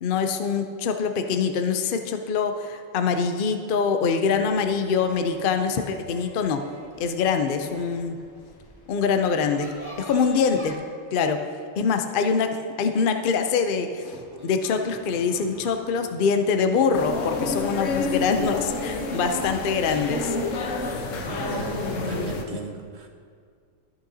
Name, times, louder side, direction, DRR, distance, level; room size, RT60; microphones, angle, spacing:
voice 1, 0.0-6.6 7.0-8.2 8.9-9.7 10.0-10.7 11.1-11.4 11.8-20.4, left 5 dB, 55° left, 6 dB, 0.6 m, -24 dB
sound 1, 4.3-10.7, left 1 dB, 20° left, 1.0 m, -44 dB
sound 2, 14.0-18.9, equal, 20° right, 1.3 m, -47 dB
sound 3, 16.9-22.4, left 3 dB, 75° left, 1.1 m, -29 dB
voice 2, 21.2-23.1, right 4 dB, 60° right, 3 dB, 1.1 m, -36 dB
13.5 x 6.4 x 2.7 m, 2.1 s
omnidirectional pair, 1.3 m